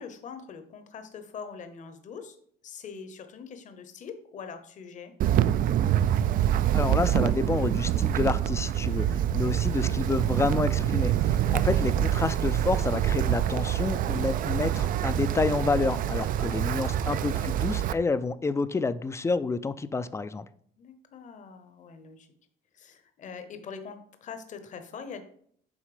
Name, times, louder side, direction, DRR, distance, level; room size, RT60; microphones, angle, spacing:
voice 1, 0.0-2.4 2.6-5.1 9.1-9.5 11.4-11.7 14.2-14.3 16.4-16.6 20.8-22.3 22.7-25.2, left 6 dB, 45° left, 8 dB, 0.9 m, -43 dB
Wind, 5.2-17.9, right 11 dB, 55° right, 0.4 m, -26 dB
voice 2, 6.7-20.5, left 4 dB, 15° left, 14 dB, 0.4 m, -29 dB
7.3 x 4.1 x 5.0 m, 0.63 s
cardioid pair, 110°, 17 cm